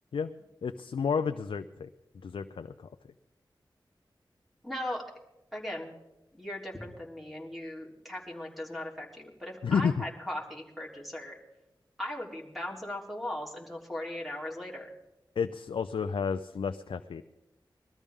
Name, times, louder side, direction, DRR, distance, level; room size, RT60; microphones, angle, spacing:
voice 1, 0.6-1.9 2.2-2.9 9.6-9.9 15.4-17.2, left 6 dB, 85° left, 8 dB, 0.5 m, -31 dB
voice 2, 4.6-5.0 5.5-5.9 6.3-11.4 12.0-14.9, left 1 dB, ahead, -2 dB, 3.4 m, -38 dB
21.5 x 13.5 x 3.6 m, 0.96 s
cardioid pair, 50°, 9 cm